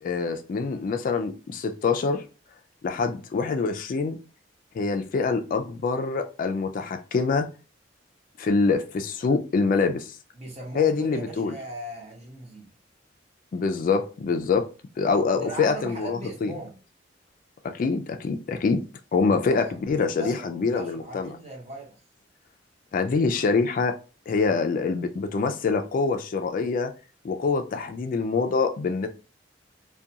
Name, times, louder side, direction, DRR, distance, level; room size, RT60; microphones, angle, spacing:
voice 1, 0.0-2.2 2.8-4.2 4.7-7.5 8.4-10.2 10.8-11.5 13.5-14.6 15.0-16.5 17.6-18.8 19.1-21.3 22.9-23.9 24.3-26.9 27.2-29.1, left 4 dB, 50° left, 0.3 m, -25 dB
voice 2, 10.3-12.7 15.3-16.8 19.4-21.9, right 1 dB, 35° right, 0.9 m, -39 dB
2.3 x 2.2 x 2.7 m
head